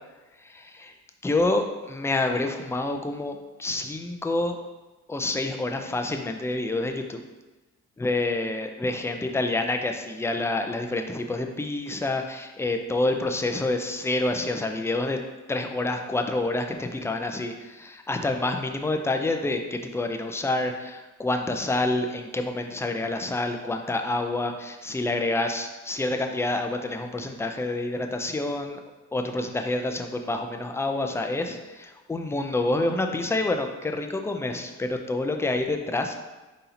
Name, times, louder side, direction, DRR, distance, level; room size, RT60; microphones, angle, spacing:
voice 1, 0.4-0.9 1.2-4.6 5.1-7.2 8.0-15.2 15.5-28.8 29.1-36.1, left 2 dB, 10° left, 5 dB, 0.4 m, -28 dB
4.1 x 2.7 x 4.1 m, 1.1 s
cardioid pair, 90°, 30 cm